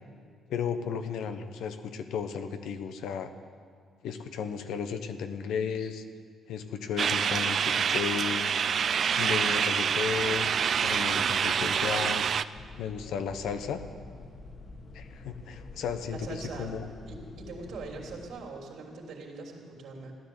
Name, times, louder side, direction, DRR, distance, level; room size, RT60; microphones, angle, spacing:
voice 1, 0.5-3.3 4.0-6.0 6.5-8.6 9.2-10.5 10.8-12.3 12.8-13.8 14.9-16.9, left 7 dB, 80° left, 8 dB, 1.0 m, -34 dB
sound 1, 7.0-12.4, right 7 dB, 55° right, 0.4 m, -27 dB
sound 2, 12.5-18.3, left 2 dB, 50° left, 2.0 m, -47 dB
voice 2, 16.1-16.7 17.0-20.1, right 3 dB, 75° right, -1 dB, 3.3 m, -42 dB
16.0 x 10.5 x 8.0 m, 2.1 s
cardioid pair, 90°, 0 cm